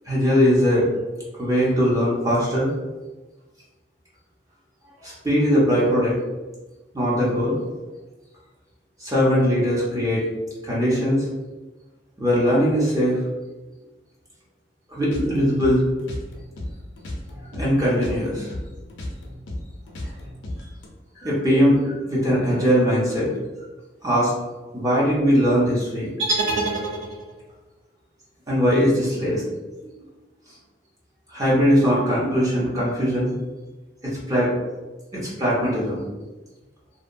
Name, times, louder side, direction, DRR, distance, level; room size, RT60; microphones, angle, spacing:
voice 1, 0.0-0.8 1.3-2.7 5.0-6.2 6.9-7.6 9.0-10.3 10.6-11.3 12.2-13.2 14.9-15.8 17.5-18.5 21.2-23.3 24.0-24.3 24.7-26.1 28.5-29.4 29.8-29.9 31.3-33.3 34.0-34.5 35.1-36.0, equal, 20° right, -7 dB, 0.6 m, -20 dB
sound 1, 15.0-17.7 17.9-20.9, left 1 dB, 90° left, 0.5 m, -34 dB
sound 2, 26.2-27.5, right 2 dB, 85° right, 0.6 m, -25 dB
2.8 x 2.2 x 2.5 m, 1.2 s
head